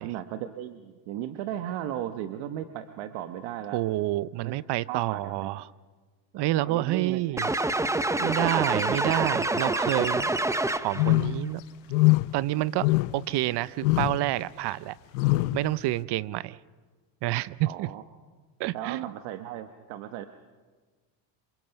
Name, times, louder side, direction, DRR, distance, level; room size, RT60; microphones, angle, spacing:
voice 1, 0.0-3.8 4.4-4.5 4.9-5.5 6.7-7.2 8.2-8.3 17.6-18.0 18.7-20.3, right 11 dB, 75° right, 9 dB, 1.2 m, -36 dB
voice 2, 3.7-5.7 6.3-7.5 8.2-10.3 10.8-11.6 12.3-15.0 15.5-16.6 17.2-17.9 18.6-19.1, right 16 dB, 55° right, 19 dB, 0.6 m, -28 dB
sound 1, 7.4-11.2, right 2 dB, 5° right, 0.7 m, -27 dB
sound 2, 11.0-11.5 11.9-12.4 12.8-13.3 13.8-14.2 15.1-15.6, left 20 dB, 90° left, 0.8 m, -23 dB
27.0 x 24.0 x 5.8 m, 1.4 s
supercardioid pair, 105°, 48 cm